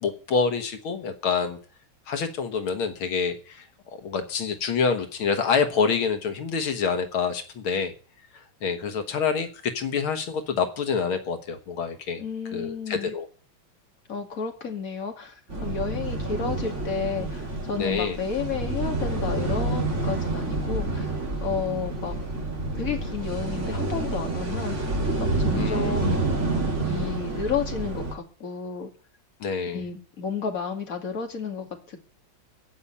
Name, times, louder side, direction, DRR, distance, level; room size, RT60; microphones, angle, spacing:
voice 1, 0.0-1.6 2.1-7.9 8.6-12.2 12.5-13.3 17.8-18.2 25.5-26.2 29.4-29.8, left 5 dB, 90° left, 7 dB, 2.3 m, -27 dB
voice 2, 12.2-13.1 14.1-15.3 15.6-21.1 21.4-22.2 22.7-24.9 25.2-26.3 26.8-28.9 29.7-32.0, left 5 dB, 40° left, 3 dB, 2.6 m, -32 dB
sound 1, 15.5-28.1, right 2 dB, 35° right, 3.1 m, -28 dB
16.0 x 5.6 x 9.9 m, 0.39 s
omnidirectional pair, 2.3 m